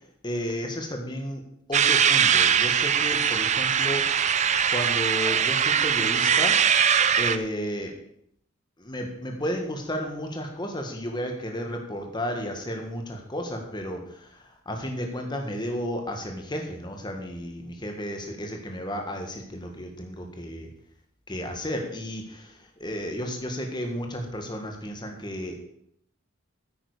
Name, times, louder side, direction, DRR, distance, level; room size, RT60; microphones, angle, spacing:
voice 1, 0.2-1.4 1.7-4.0 4.7-6.6 7.2-7.9 8.8-20.7 21.3-22.5 22.8-25.6, equal, 20° left, 3 dB, 1.6 m, -33 dB
sound 1, 1.7-7.4, right 8 dB, 35° right, 0.5 m, -21 dB
9.6 x 8.9 x 4.9 m, 0.71 s
head